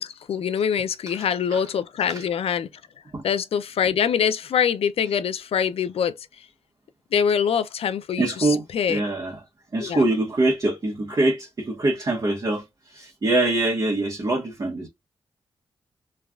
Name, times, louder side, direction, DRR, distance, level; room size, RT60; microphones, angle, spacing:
voice 1, 0.0-2.7 3.2-6.1 7.1-9.0 9.8-10.0, left 7 dB, 80° left, 0.4 m, -24 dB
voice 2, 8.2-8.6 8.9-9.3 9.7-14.9, right 2 dB, 40° right, 1.1 m, -24 dB
3.2 x 2.3 x 2.2 m
cardioid pair, 75°, 10 cm